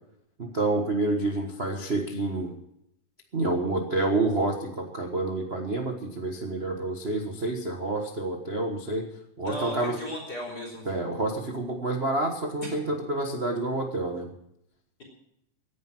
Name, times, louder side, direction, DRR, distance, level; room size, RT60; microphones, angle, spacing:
voice 1, 0.4-2.5 3.3-9.1 9.4-10.0 10.9-14.3, right 2 dB, 75° right, 2 dB, 0.5 m, -28 dB
voice 2, 9.4-10.8, equal, 30° left, 0 dB, 4.0 m, -35 dB
18.0 x 10.5 x 6.0 m, 0.79 s
omnidirectional pair, 3.6 m